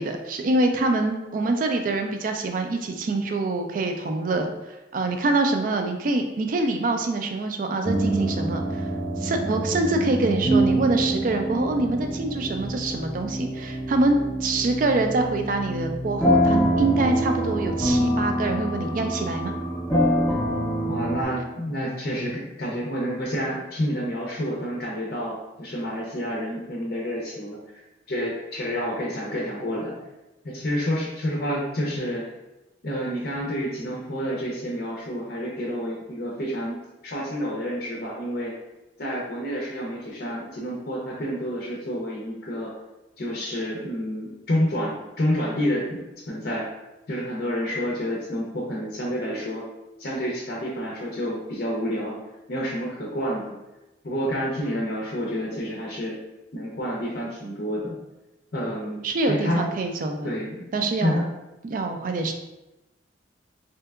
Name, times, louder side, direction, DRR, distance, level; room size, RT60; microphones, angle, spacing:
voice 1, 0.0-8.9 9.2-19.5 59.0-60.3 60.7-61.2 61.6-62.3, right 2 dB, 45° right, 5 dB, 0.3 m, -25 dB
sound 1, 7.8-21.2, right 1 dB, 15° left, 0.9 m, -25 dB
voice 2, 20.9-27.6 28.1-30.0 30.4-32.3 32.8-38.5 39.0-42.7 43.2-46.0 46.3-46.7 47.1-49.7 50.0-52.2 52.5-53.5 54.0-56.2 56.5-58.0 58.5-59.6 60.2-60.6 61.0-61.3, equal, 50° left, -3 dB, 0.5 m, -29 dB
3.3 x 2.8 x 2.3 m, 1.0 s
head